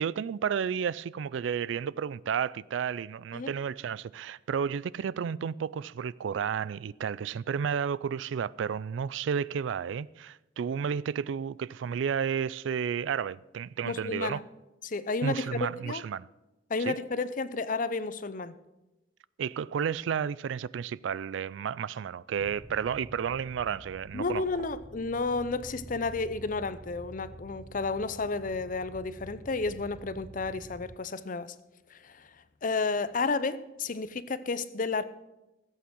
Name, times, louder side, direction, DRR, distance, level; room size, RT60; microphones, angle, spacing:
voice 1, 0.0-14.4 15.2-16.3 16.8-17.0 19.4-24.4, right 7 dB, 70° right, 0.3 m, -32 dB
voice 2, 13.9-14.4 14.8-16.0 16.7-18.5 24.1-31.5 31.9-32.3 32.6-35.0, left 3 dB, 45° left, 0.6 m, -32 dB
sound 1, 22.4-31.0, right 1 dB, 15° right, 0.5 m, -48 dB
15.0 x 8.5 x 6.2 m
head